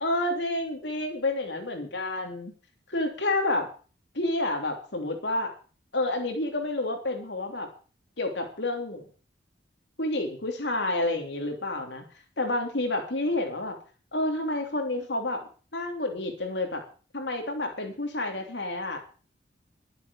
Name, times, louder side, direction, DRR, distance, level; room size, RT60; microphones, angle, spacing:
voice 1, 0.0-2.5 2.9-3.7 4.1-5.5 5.9-7.7 8.2-9.0 10.0-12.0 12.4-13.8 14.1-16.8 17.1-19.0, left 2 dB, 70° left, 4 dB, 3.3 m, -29 dB
12.5 x 10.5 x 7.1 m, 0.39 s
head